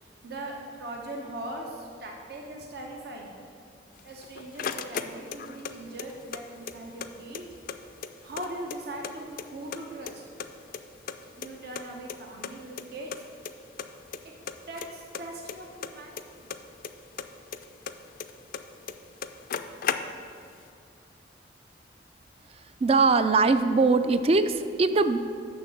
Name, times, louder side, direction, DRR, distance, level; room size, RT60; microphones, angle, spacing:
voice 1, 0.0-3.3 4.0-7.4 8.2-10.2 11.3-13.2 14.7-16.5, right 1 dB, 60° right, 0 dB, 0.9 m, -40 dB
sound 1, 4.0-5.7 6.0-7.1 7.3-7.4 7.7-9.1 9.4-10.1 10.4-11.8 12.1-12.2 12.4-12.5 12.8-12.9 13.1-13.5 13.8-14.2 14.5-16.9 17.2-18.6 18.9-19.0 19.2-20.4, left 7 dB, 55° left, 0.4 m, -35 dB
voice 2, 22.8-25.2, right 3 dB, 35° right, 11 dB, 0.4 m, -21 dB
6.6 x 5.9 x 7.1 m, 2.4 s
head